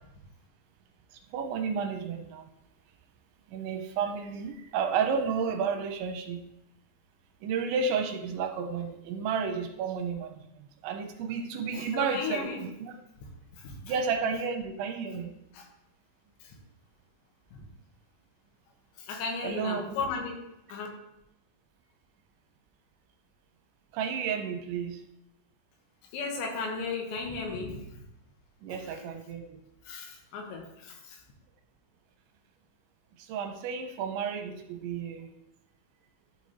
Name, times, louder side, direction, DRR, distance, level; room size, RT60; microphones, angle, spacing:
voice 1, 1.3-2.4 3.5-6.4 7.4-12.7 13.8-15.3 19.4-19.9 23.9-25.0 28.6-29.6 33.2-35.3, right 6 dB, 85° right, 5 dB, 3.0 m, -32 dB
voice 2, 11.7-12.6 13.5-13.8 15.5-15.7 16.4-16.6 17.5-17.6 19.0-20.4 20.7-20.9 26.1-27.9 29.9-31.2, left 4 dB, 75° left, 2 dB, 3.4 m, -35 dB
11.5 x 4.9 x 4.1 m, 0.83 s
omnidirectional pair, 5.3 m